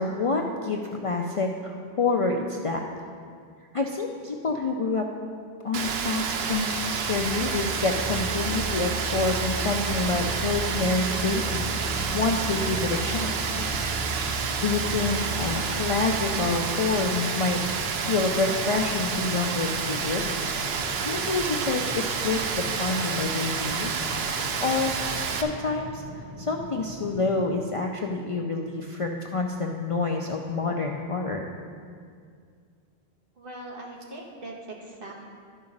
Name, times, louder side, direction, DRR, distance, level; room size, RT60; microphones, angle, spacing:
voice 1, 0.0-2.8 3.7-5.1 5.6-11.9 12.1-13.6 14.1-17.6 17.9-24.1 24.6-24.9 25.4-26.0 26.4-31.5, left 3 dB, 45° left, 1 dB, 0.4 m, -28 dB
Rain, 5.7-25.4, right 5 dB, 80° right, 0.9 m, -29 dB
sound 1, 6.6-17.6, right 2 dB, 15° left, 0.8 m, -36 dB
Ferry Boat Ventilation, 10.0-27.5, left 2 dB, 30° right, 1.2 m, -41 dB
voice 2, 33.4-35.3, right 1 dB, 60° right, -2 dB, 1.5 m, -41 dB
12.0 x 4.8 x 5.2 m, 2.2 s
omnidirectional pair, 1.0 m